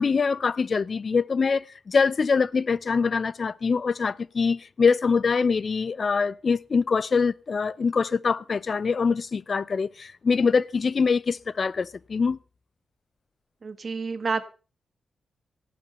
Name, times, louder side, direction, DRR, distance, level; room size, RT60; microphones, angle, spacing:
voice 1, 0.0-12.4, left 5 dB, 55° left, 0.7 m, -24 dB
voice 2, 13.6-14.4, right 4 dB, 55° right, 1.9 m, -29 dB
14.5 x 12.0 x 5.4 m
supercardioid pair, 45°, 0 cm